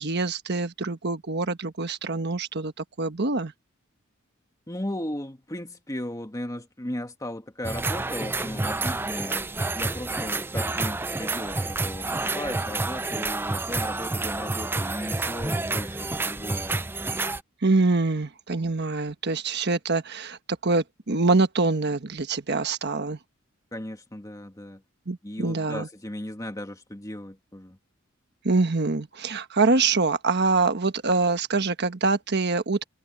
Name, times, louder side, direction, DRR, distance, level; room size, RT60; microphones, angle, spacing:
voice 1, 0.0-3.5 17.6-23.2 25.1-25.9 28.4-32.8, right 3 dB, 55° right, 1.3 m, -25 dB
voice 2, 4.7-9.5 9.8-16.8 23.7-24.8 25.2-27.8, left 1 dB, 15° left, 1.8 m, -36 dB
sound 1, 7.6-17.4, right 3 dB, 10° right, 0.4 m, -29 dB
head